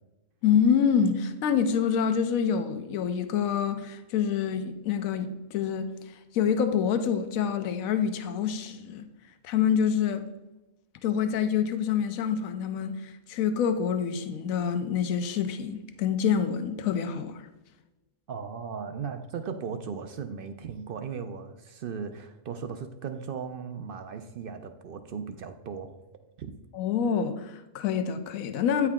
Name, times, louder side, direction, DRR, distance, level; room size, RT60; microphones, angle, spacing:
voice 1, 0.4-5.9 6.3-9.1 9.4-10.3 11.0-17.4 26.7-28.9, left 7 dB, 80° left, 1.0 m, -26 dB
voice 2, 18.3-26.0 26.4-26.5, right 6 dB, 60° right, 0.6 m, -37 dB
8.8 x 4.7 x 3.5 m
omnidirectional pair, 1.5 m